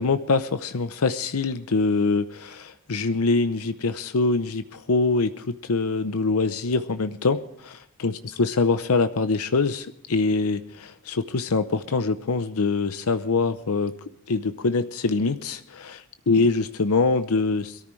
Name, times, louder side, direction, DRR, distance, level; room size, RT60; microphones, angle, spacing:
voice 1, 0.0-13.9 14.3-17.8, left 3 dB, 75° left, 11 dB, 0.7 m, -24 dB
22.0 x 13.5 x 3.2 m, 0.71 s
head